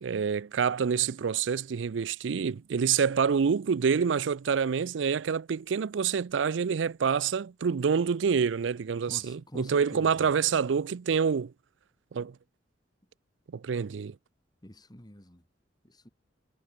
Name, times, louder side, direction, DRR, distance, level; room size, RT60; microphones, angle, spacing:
voice 1, 0.0-11.5 12.1-12.3 13.5-14.2, right 6 dB, 80° right, 0.4 m, -27 dB
voice 2, 9.1-10.3 14.6-15.4 15.8-16.1, left 1 dB, 20° left, 2.9 m, -46 dB
head